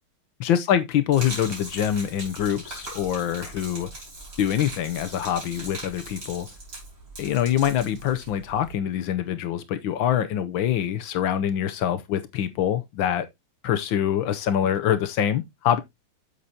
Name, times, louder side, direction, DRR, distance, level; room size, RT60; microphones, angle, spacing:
voice 1, 0.4-3.9 4.4-6.5 7.2-13.3 13.6-15.8, left 10 dB, 70° left, 1.4 m, -25 dB
Gurgling / Liquid, 1.1-8.7, right 2 dB, 50° right, 4.5 m, -40 dB
8.0 x 6.8 x 2.7 m
omnidirectional pair, 2.3 m